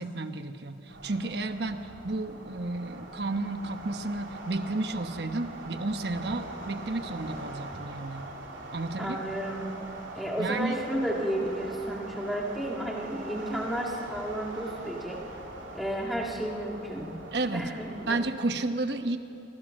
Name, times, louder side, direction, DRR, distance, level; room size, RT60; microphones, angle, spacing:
voice 1, 0.0-8.3 8.7-9.2 10.4-10.8 17.3-17.7 18.1-19.2, right 2 dB, 65° right, 8 dB, 1.1 m, -32 dB
sound 1, 0.9-18.3, right 2 dB, 90° right, 3.4 m, -42 dB
voice 2, 9.0-9.7 10.1-15.2 15.7-17.1 17.5-18.2, right 1 dB, ahead, -2 dB, 2.2 m, -32 dB
26.5 x 23.5 x 6.5 m, 2.8 s
head